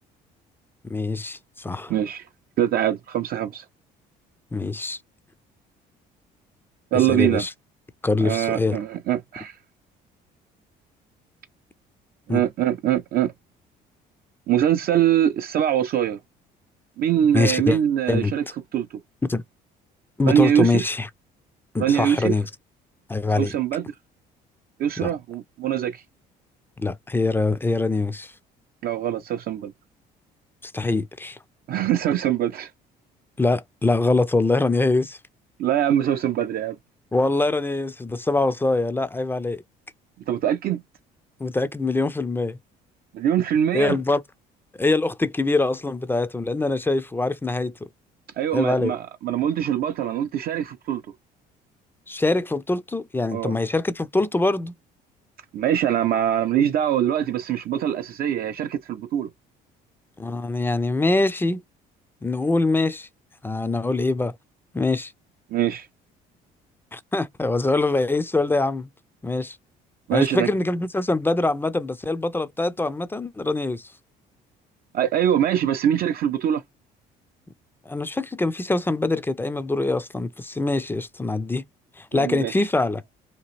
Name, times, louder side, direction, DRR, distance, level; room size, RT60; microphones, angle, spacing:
voice 1, 0.8-1.9 4.5-5.0 7.1-7.5 8.0-8.8 12.3-12.4 17.3-17.8 18.1-18.3 19.2-19.4 20.2-21.1 21.7-22.5 23.1-23.5 25.0-25.1 26.8-28.3 30.6-31.4 33.4-35.2 37.1-39.6 41.4-42.6 43.7-44.2 44.8-47.7 48.5-48.9 52.1-54.7 60.2-61.6 62.2-63.1 63.4-64.3 64.7-65.1 66.9-68.9 69.2-69.6 70.1-73.9 77.9-81.6 82.0-83.0, left 2 dB, 10° left, 0.4 m, -23 dB
voice 2, 1.9-2.3 2.6-3.6 6.9-7.5 8.2-9.6 12.3-13.3 14.5-16.2 17.0-18.4 18.7-18.9 20.3-20.8 21.8-22.3 23.3-23.9 24.8-26.0 28.8-29.7 31.7-32.7 35.6-36.8 40.3-40.8 43.1-44.0 48.4-51.0 53.3-53.5 55.5-59.3 65.5-65.9 70.1-70.5 74.9-76.6 82.1-82.5, right 10 dB, 55° right, 0.4 m, -23 dB
2.9 x 2.4 x 3.0 m
supercardioid pair, 75°, 19 cm